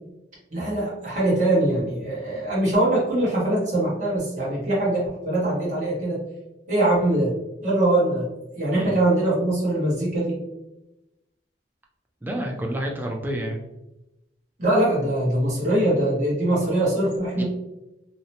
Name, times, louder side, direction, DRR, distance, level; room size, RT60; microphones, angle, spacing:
voice 1, 0.5-6.2 6.7-7.3 7.6-8.3 8.6-10.4 14.6-17.4, right 1 dB, 45° right, -7 dB, 1.1 m, -22 dB
voice 2, 8.7-9.0 12.2-13.6 17.4-17.5, right 1 dB, 10° right, 0 dB, 0.4 m, -29 dB
2.7 x 2.1 x 2.7 m, 0.92 s
head